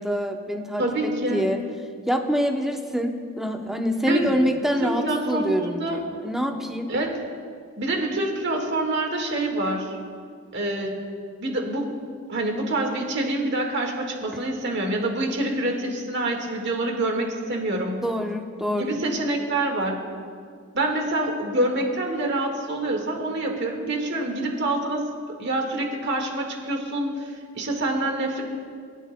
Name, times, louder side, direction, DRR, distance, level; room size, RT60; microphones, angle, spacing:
voice 1, 0.0-1.6 2.1-6.9 18.0-19.0, equal, ahead, 3 dB, 0.7 m, -26 dB
voice 2, 0.8-1.5 4.0-4.4 4.8-6.0 6.9-7.1 7.8-10.0 10.5-11.0 11.4-11.9 12.3-18.0 18.8-20.0 20.7-25.1 25.4-28.4, right 1 dB, 55° right, 1 dB, 1.7 m, -26 dB
22.0 x 10.0 x 2.2 m, 2.1 s
head